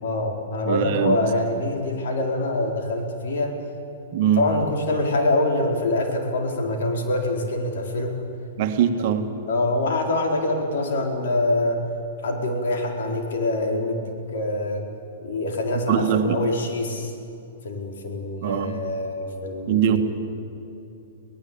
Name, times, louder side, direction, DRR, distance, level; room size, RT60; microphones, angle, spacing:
voice 1, 0.0-3.5 4.4-8.2 9.5-11.8 12.2-14.8 15.2-17.1 17.6-20.0, left 2 dB, 70° left, 2 dB, 4.5 m, -25 dB
voice 2, 0.7-1.2 4.1-4.4 8.6-9.3 15.9-16.4 18.4-18.8 19.7-20.0, right 9 dB, 50° right, 7 dB, 1.7 m, -21 dB
24.0 x 18.5 x 8.9 m, 2.7 s
hypercardioid pair, 145°, 0 cm